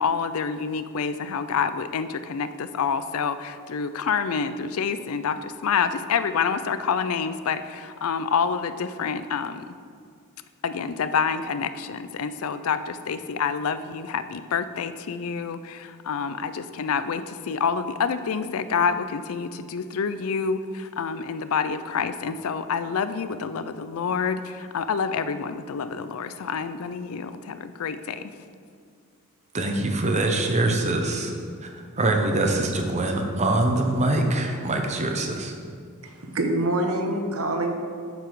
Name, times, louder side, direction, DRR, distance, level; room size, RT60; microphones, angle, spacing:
voice 1, 0.0-9.6 10.6-28.2, left 6 dB, 70° left, 11 dB, 0.4 m, -27 dB
voice 2, 29.5-31.3 31.6-35.5, right 2 dB, 30° right, 3 dB, 0.8 m, -24 dB
voice 3, 36.0-37.7, right 1 dB, 65° right, 4 dB, 0.9 m, -25 dB
7.8 x 6.9 x 4.8 m, 2.2 s
head